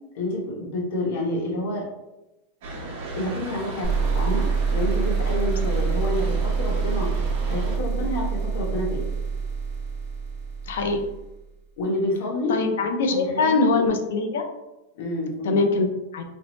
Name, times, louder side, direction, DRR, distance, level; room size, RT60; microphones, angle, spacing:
voice 1, 0.1-1.9 3.1-7.1 7.5-9.1 11.8-12.6 13.1-13.8 14.9-15.6, left 1 dB, 60° left, -2 dB, 0.9 m, -28 dB
sound 1, 2.6-7.8, right 2 dB, 60° right, 0.8 m, -35 dB
sound 2, 3.8-11.4, right 5 dB, 15° right, 1.0 m, -26 dB
voice 2, 10.7-11.0 12.5-14.4 15.4-16.2, left 3 dB, 80° left, 5 dB, 0.4 m, -23 dB
2.6 x 2.0 x 3.0 m, 0.96 s
supercardioid pair, 145°, 0 cm